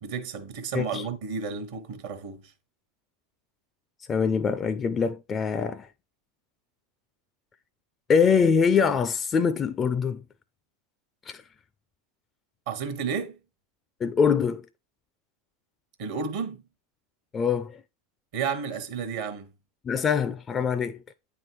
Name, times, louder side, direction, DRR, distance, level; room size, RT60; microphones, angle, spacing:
voice 1, 0.0-2.5 12.7-13.3 16.0-16.6 18.3-19.5, right 6 dB, 70° right, 0.9 m, -32 dB
voice 2, 0.7-1.1 4.1-5.9 8.1-10.2 11.3-11.4 14.0-14.6 17.3-17.8 19.8-21.0, left 6 dB, 30° left, 0.4 m, -24 dB
8.8 x 3.6 x 3.1 m
hypercardioid pair, 85°, 0 cm